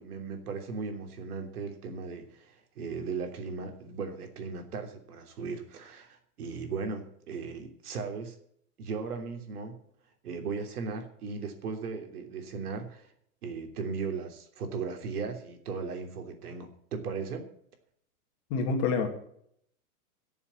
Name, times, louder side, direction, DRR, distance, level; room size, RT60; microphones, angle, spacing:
voice 1, 0.0-8.4 8.8-9.8 10.2-13.1 13.4-17.5, right 5 dB, 75° right, 5 dB, 3.2 m, -37 dB
voice 2, 18.5-19.1, left 4 dB, 30° left, 3 dB, 2.3 m, -27 dB
14.5 x 7.2 x 8.2 m, 0.67 s
supercardioid pair, 170°, 45 cm